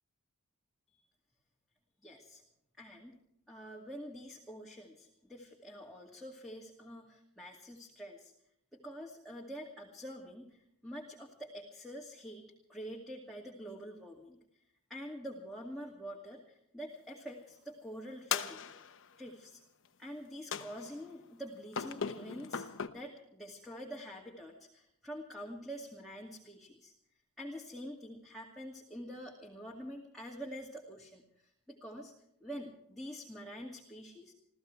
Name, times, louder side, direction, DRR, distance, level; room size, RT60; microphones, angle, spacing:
voice 1, 2.0-2.4 2.8-3.2 3.5-8.3 8.7-14.4 14.9-18.6 19.2-19.6 20.0-26.9 27.4-31.2 31.7-32.1 32.4-34.3, equal, ahead, -4 dB, 2.3 m, -46 dB
sound 1, 18.3-19.1 20.5-21.1 21.7-22.9, left 6 dB, 65° left, 1.1 m, -38 dB
27.5 x 15.0 x 3.3 m, 0.74 s
head